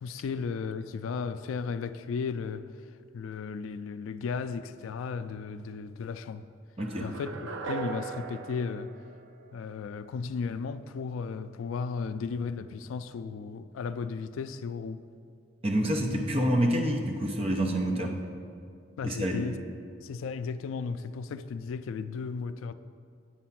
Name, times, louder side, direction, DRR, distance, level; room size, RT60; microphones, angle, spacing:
voice 1, 0.0-2.7 3.1-6.5 7.0-7.3 7.7-8.9 9.5-15.0 19.0-19.6 20.0-22.7, left 5 dB, 85° left, 0.3 m, -35 dB
voice 2, 6.8-7.1 15.6-18.1 19.0-19.4, right 1 dB, 30° right, 0.7 m, -27 dB
sound 1, 6.8-9.9, right 4 dB, 75° right, 0.5 m, -39 dB
8.5 x 4.5 x 5.8 m
head